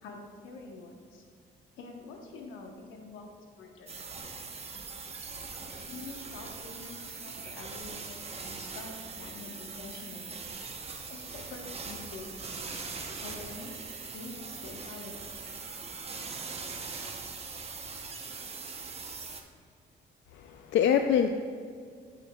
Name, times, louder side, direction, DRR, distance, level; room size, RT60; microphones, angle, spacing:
voice 1, 0.0-1.2 1.8-3.2 3.5-3.9 5.8-10.4 11.1-12.9 13.2-13.7 14.1-15.2, left 3 dB, 85° left, 2 dB, 1.0 m, -46 dB
sound 1, 3.9-19.4, right 4 dB, 30° right, 0.8 m, -41 dB
voice 2, 20.3-21.3, left 8 dB, 70° left, 6 dB, 0.4 m, -25 dB
9.3 x 8.3 x 2.3 m, 2.2 s
cardioid pair, 90°, 20 cm